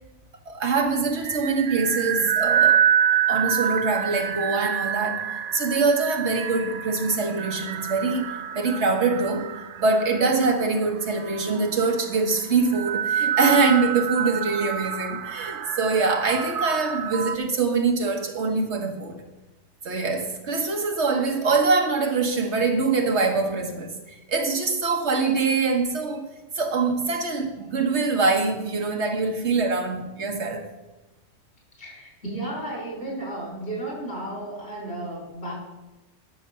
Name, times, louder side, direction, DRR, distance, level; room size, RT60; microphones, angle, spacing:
voice 1, 0.5-2.8 3.3-8.3 8.5-9.5 9.8-19.2 19.8-26.3 26.5-30.7, right 4 dB, 85° right, 1.7 m, -24 dB
sound 1, 1.2-17.4, right 8 dB, 60° right, 0.6 m, -27 dB
voice 2, 31.8-35.5, right 1 dB, 70° left, 5.1 m, -33 dB
10.5 x 6.7 x 6.8 m
omnidirectional pair, 1.1 m